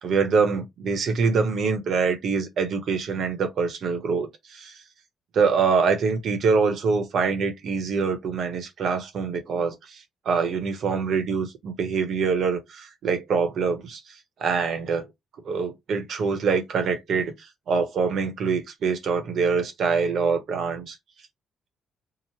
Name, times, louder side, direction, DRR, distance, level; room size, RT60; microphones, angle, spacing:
voice 1, 0.0-4.8 5.3-15.1 15.4-21.0, right 5 dB, 65° right, 0.9 m, -25 dB
2.9 x 2.1 x 3.0 m
cardioid pair, 90°, 0 cm